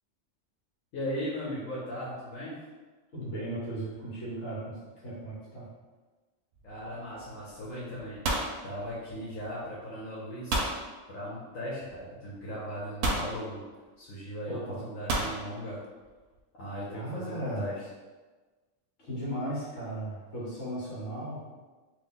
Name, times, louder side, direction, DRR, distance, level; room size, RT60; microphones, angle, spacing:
voice 1, 0.9-2.6 6.6-10.6 11.1-13.6 14.0-15.8 16.6-17.8, equal, 85° left, -8 dB, 1.2 m, -38 dB
voice 2, 3.1-4.8 5.0-5.7 14.5-14.8 16.9-17.7 19.0-21.4, right 1 dB, 65° left, -8 dB, 1.6 m, -36 dB
sound 1, 6.6-6.9 7.2-7.6 7.9-9.5 10.5-10.8 12.0-12.1 13.0-13.4 15.1-15.4, right 2 dB, 80° right, 1.0 m, -30 dB
3.2 x 2.4 x 3.7 m, 1.3 s
omnidirectional pair, 1.3 m